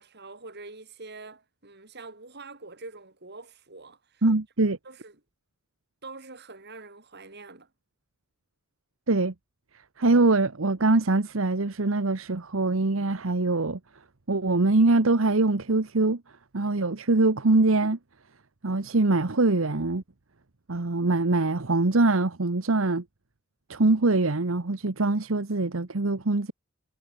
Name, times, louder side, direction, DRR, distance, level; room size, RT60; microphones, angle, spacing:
voice 1, 0.0-4.2 4.8-5.1 6.0-7.7, right 3 dB, 55° right, 6.6 m, -45 dB
voice 2, 4.2-4.8 9.1-9.3 10.0-13.8 14.3-16.2 16.5-18.0 18.6-20.0 20.7-23.0 23.7-26.5, right 2 dB, 75° right, 1.2 m, -23 dB
head